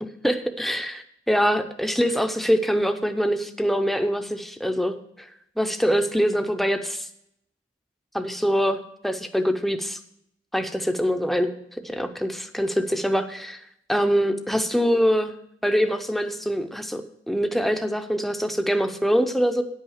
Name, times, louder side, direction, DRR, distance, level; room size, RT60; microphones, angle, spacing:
voice 1, 0.0-5.3 5.6-7.1 8.1-10.0 10.5-13.6 13.9-15.3 15.6-19.6, equal, ahead, 7 dB, 0.5 m, -24 dB
10.0 x 5.6 x 7.1 m, 0.74 s
head